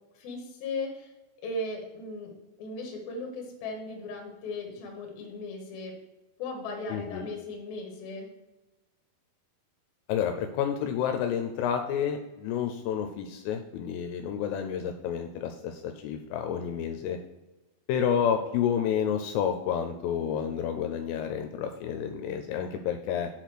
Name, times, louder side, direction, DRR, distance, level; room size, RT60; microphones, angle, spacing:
voice 1, 0.1-1.1 1.4-2.3 2.6-5.9 6.4-8.3, left 2 dB, 60° left, 1 dB, 2.7 m, -37 dB
voice 2, 6.9-7.3 10.1-17.2 17.9-23.3, left 8 dB, 85° left, 6 dB, 3.1 m, -30 dB
8.3 x 4.2 x 6.2 m, 1.1 s
omnidirectional pair, 5.8 m